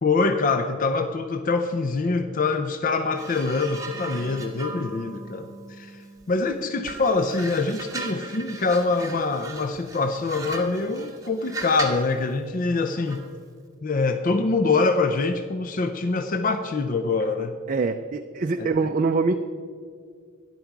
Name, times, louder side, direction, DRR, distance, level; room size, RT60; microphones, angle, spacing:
voice 1, 0.0-5.5 5.8-6.0 6.3-13.2 13.8-17.6 18.6-18.7, left 3 dB, 40° left, 8 dB, 0.4 m, -24 dB
sound 1, 3.2-6.4 6.8-12.1 13.1-13.3, right 3 dB, 15° right, 1.2 m, -38 dB
voice 2, 17.7-19.4, right 4 dB, 40° right, 6 dB, 0.4 m, -24 dB
12.5 x 10.5 x 4.6 m, 2.1 s
head